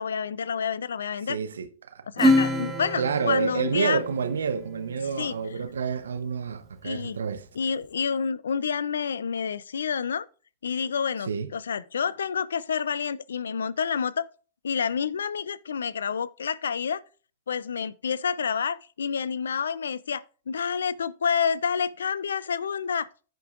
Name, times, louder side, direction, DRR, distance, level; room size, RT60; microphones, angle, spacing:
voice 1, 0.0-1.4 2.1-4.0 5.2-5.3 6.8-7.2 7.5-10.3 10.6-14.3 14.6-17.0 17.5-23.1, left 6 dB, 80° left, 0.5 m, -28 dB
voice 2, 1.3-2.0 3.0-7.5 11.3-11.5, right 6 dB, 80° right, 0.8 m, -29 dB
Acoustic guitar / Strum, 2.2-5.1, left 1 dB, 20° right, 1.7 m, -26 dB
15.0 x 5.3 x 2.5 m
hypercardioid pair, 110°, 0 cm